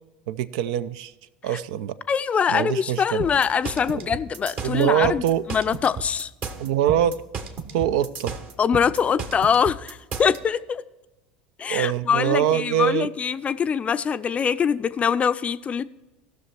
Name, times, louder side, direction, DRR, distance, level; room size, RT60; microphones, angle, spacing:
voice 1, 0.3-1.1 1.4-1.9 2.5-3.2 4.6-5.5 6.6-7.2 7.7-8.4 11.7-13.1, right 10 dB, 65° right, 0.5 m, -23 dB
voice 2, 2.1-6.3 8.6-10.8 11.6-15.8, left 7 dB, 30° left, 0.5 m, -23 dB
sound 1, 3.2-10.4, right 5 dB, 40° right, 1.3 m, -34 dB
16.5 x 6.5 x 4.5 m
hypercardioid pair, 75°, 4 cm